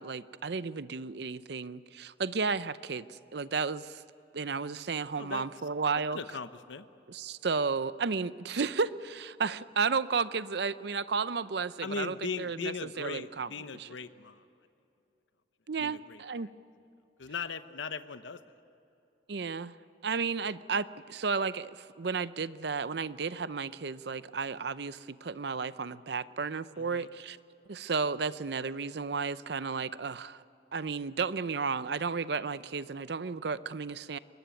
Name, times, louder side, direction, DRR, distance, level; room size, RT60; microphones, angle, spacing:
voice 1, 0.0-4.0 4.3-6.2 7.1-13.9 15.7-16.5 19.3-19.7 20.0-27.4 27.7-30.4 30.7-34.2, right 5 dB, 65° right, 16 dB, 0.6 m, -33 dB
voice 2, 5.2-5.5 6.1-6.9 11.8-14.5 15.8-16.5 17.2-18.4 26.7-27.1, left 5 dB, 85° left, 11 dB, 0.9 m, -39 dB
22.0 x 19.5 x 9.1 m, 2.8 s
head